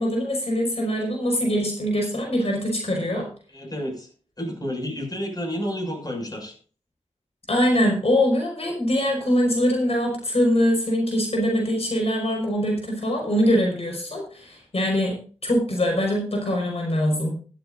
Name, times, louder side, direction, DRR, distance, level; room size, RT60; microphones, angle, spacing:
voice 1, 0.0-3.3 7.5-17.4, equal, 55° left, -1 dB, 5.2 m, -23 dB
voice 2, 3.5-4.1 4.4-6.5, equal, 30° left, 2 dB, 6.3 m, -30 dB
16.0 x 13.5 x 2.6 m, 0.40 s
wide cardioid pair, 70°, 12 cm